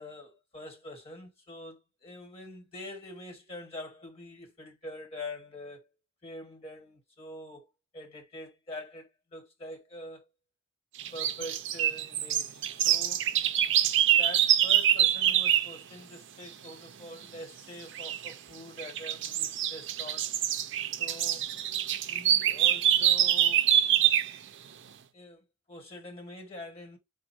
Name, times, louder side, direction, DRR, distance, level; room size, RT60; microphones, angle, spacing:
voice 1, 0.0-5.9 6.2-7.7 7.9-10.2 11.1-13.2 14.2-20.3 21.0-21.6 22.1-23.6 25.1-27.0, left 1 dB, 30° left, 1.4 m, -45 dB
birds chirping in a forest, 11.0-15.7 18.0-18.3 18.8-24.4, right 10 dB, 60° right, 0.5 m, -25 dB
5.0 x 2.1 x 4.5 m
head